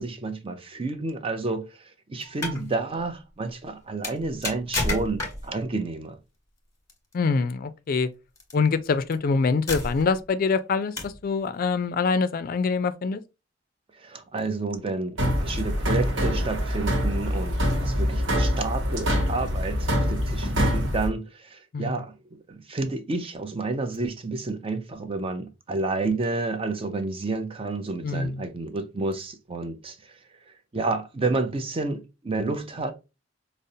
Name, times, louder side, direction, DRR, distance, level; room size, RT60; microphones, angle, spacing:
voice 1, 0.0-6.2 14.0-22.2 22.5-30.2 30.7-32.9, right 3 dB, 30° right, 0.5 m, -30 dB
sound 1, 2.2-2.6 4.0-5.6 6.9-7.1 8.4-8.5 9.1-9.2 9.7-10.2 11.0-11.3, left 2 dB, 15° left, 1.2 m, -30 dB
voice 2, 7.1-8.1 8.5-13.2 21.7-22.0 28.0-28.5, left 4 dB, 45° left, 0.4 m, -25 dB
sound 2, 15.2-21.1, equal, 70° right, 1.0 m, -25 dB
5.1 x 2.0 x 2.7 m
head